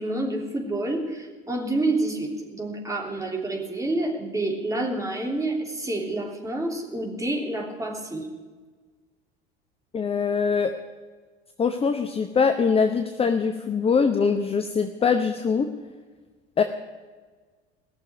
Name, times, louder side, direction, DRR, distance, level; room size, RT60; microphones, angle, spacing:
voice 1, 0.0-8.3, right 2 dB, 10° right, -1 dB, 3.1 m, -28 dB
voice 2, 9.9-10.7 11.6-15.7 16.6-16.7, left 5 dB, 20° left, 7 dB, 0.8 m, -23 dB
18.5 x 6.9 x 9.2 m, 1.4 s
figure-of-eight pair, 70°, 32 cm